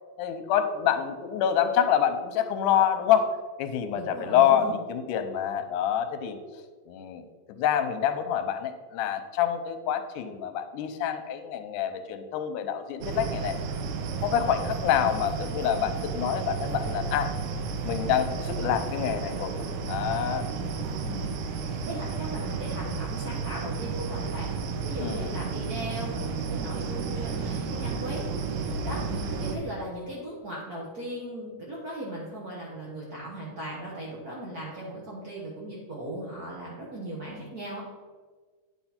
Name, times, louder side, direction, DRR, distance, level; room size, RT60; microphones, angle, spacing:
voice 1, 0.2-6.4 6.9-13.6 14.2-17.3 17.9-19.5 19.9-20.5 25.0-25.3, left 9 dB, 85° left, 9 dB, 2.2 m, -27 dB
voice 2, 3.9-4.7 14.3-14.5 20.9-24.5 24.8-37.8, right 1 dB, 60° right, -5 dB, 0.9 m, -38 dB
sound 1, 13.0-29.6, right 5 dB, 90° right, 2.3 m, -32 dB
9.7 x 5.9 x 4.3 m, 1.4 s
omnidirectional pair, 3.6 m